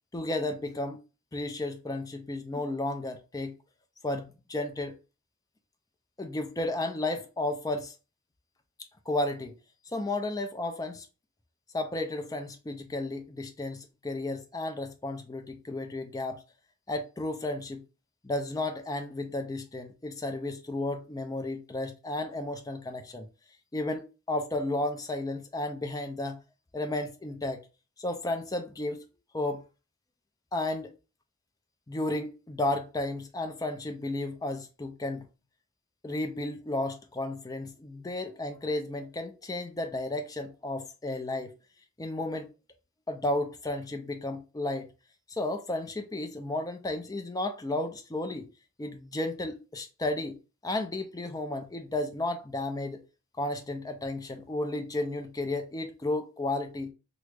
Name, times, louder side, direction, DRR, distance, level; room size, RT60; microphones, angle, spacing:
voice 1, 0.1-1.0 1.3-3.5 4.0-5.0 6.2-7.9 9.1-9.6 9.9-11.1 11.7-16.4 16.9-17.8 18.2-23.3 23.7-26.4 26.7-27.6 28.0-29.0 29.3-29.6 30.5-30.9 31.9-35.3 36.0-41.5 42.0-42.5 43.1-44.9 45.3-48.5 48.8-53.0 53.4-56.9, left 2 dB, 15° left, 0.4 m, -33 dB
3.0 x 2.4 x 3.3 m
head